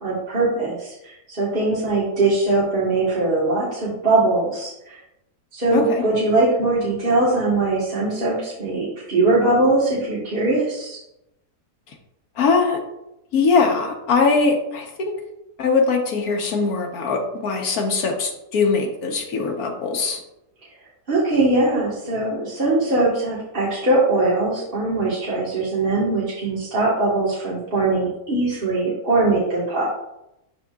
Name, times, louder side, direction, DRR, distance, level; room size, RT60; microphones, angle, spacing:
voice 1, 0.0-4.9 5.5-11.0 21.1-29.9, right 2 dB, 35° right, -7 dB, 1.5 m, -21 dB
voice 2, 5.7-6.0 12.4-12.8 13.3-15.1 15.6-20.2, left 4 dB, 70° left, 3 dB, 1.4 m, -21 dB
11.0 x 3.7 x 2.3 m, 0.87 s
omnidirectional pair, 1.7 m